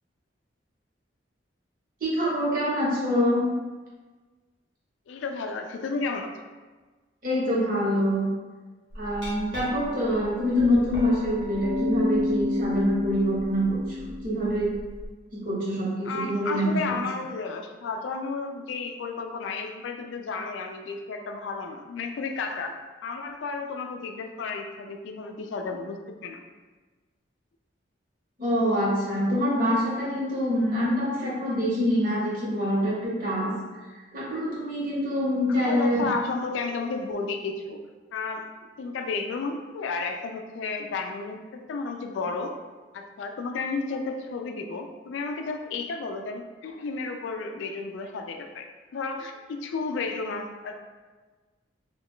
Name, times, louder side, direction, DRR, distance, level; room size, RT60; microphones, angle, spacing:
voice 1, 2.0-3.5 7.2-8.2 8.9-14.8 15.4-17.0 28.4-33.5 34.1-36.0, equal, 45° right, -7 dB, 1.0 m, -25 dB
voice 2, 5.1-6.3 16.0-22.8 23.0-26.4 35.5-37.8 38.1-38.5 38.8-42.6 42.9-50.8, left 4 dB, 80° left, 5 dB, 0.3 m, -32 dB
Glass, 8.9-15.1, left 2 dB, 70° right, 1.1 m, -32 dB
2.3 x 2.2 x 3.6 m, 1.3 s
head